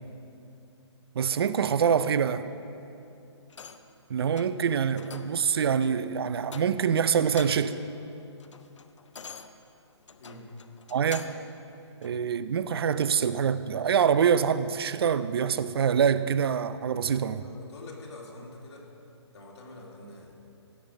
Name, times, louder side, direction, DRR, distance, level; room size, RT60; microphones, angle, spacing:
voice 1, 1.1-2.4 4.1-7.8 10.9-11.3 12.0-17.4, right 7 dB, 55° right, 0.5 m, -25 dB
sound 1, 3.5-4.0 4.3-4.6 5.0-5.4 5.8-6.0 6.4-6.9 7.2-7.8 8.2-11.5 12.0-12.2, left 5 dB, 85° left, 0.8 m, -45 dB
voice 2, 10.2-10.5 17.3-18.9 19.3-20.3, left 2 dB, 65° left, 2.6 m, -46 dB
16.5 x 7.0 x 5.2 m
hypercardioid pair, 160°, 15 cm